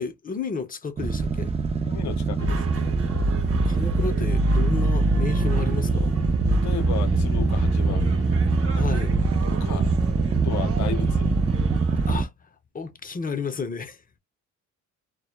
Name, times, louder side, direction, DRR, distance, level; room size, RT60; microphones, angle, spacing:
voice 1, 0.0-1.5 3.6-6.1 8.8-9.1 12.1-12.3 12.7-14.0, left 5 dB, 30° left, 0.6 m, -32 dB
sound 1, 1.0-12.2, right 3 dB, 20° right, 0.4 m, -23 dB
voice 2, 1.8-2.7 6.5-8.4 9.4-9.9 10.4-11.3, left 9 dB, 70° left, 0.6 m, -35 dB
sound 2, 2.4-12.2, right 2 dB, 50° right, 0.7 m, -30 dB
2.1 x 2.1 x 2.9 m
cardioid pair, 90°, 30 cm